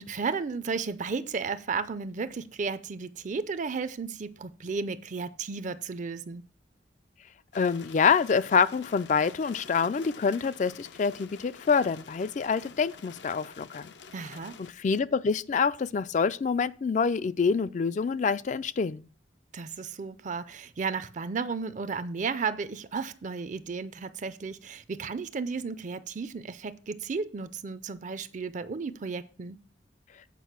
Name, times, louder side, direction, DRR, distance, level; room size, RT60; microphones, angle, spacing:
voice 1, 0.0-6.4 14.1-14.6 19.5-29.6, right 5 dB, 40° right, 0.4 m, -34 dB
sound 1, 7.5-14.7, left 5 dB, 75° left, 0.6 m, -48 dB
voice 2, 7.5-13.8 14.8-19.0, left 5 dB, 40° left, 0.3 m, -26 dB
8.3 x 4.9 x 5.9 m
head